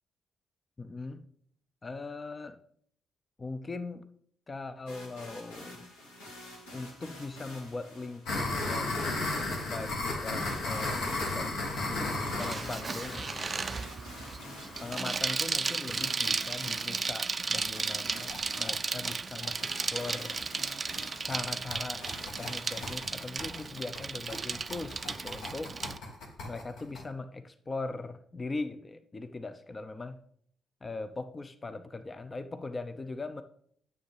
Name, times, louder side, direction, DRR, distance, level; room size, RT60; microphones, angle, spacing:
voice 1, 0.8-1.2 1.8-2.6 3.4-4.1 4.5-5.9 6.7-9.4 9.6-11.5 11.9-12.1 12.4-13.3 14.8-20.3 21.2-25.7 26.4-30.2 30.8-33.4, left 3 dB, 30° left, 10 dB, 0.6 m, -40 dB
sound 1, 4.9-23.3, left 1 dB, 80° left, 1.6 m, -49 dB
sound 2, 8.3-15.9 16.3-16.4 16.6-16.7 17.0-17.1 17.4-17.6 18.0-27.0, left 2 dB, 60° left, 1.3 m, -35 dB
Bicycle, 12.4-26.0, right 4 dB, 35° right, 0.4 m, -34 dB
9.3 x 6.7 x 3.3 m, 0.63 s
figure-of-eight pair, 40°, 0 cm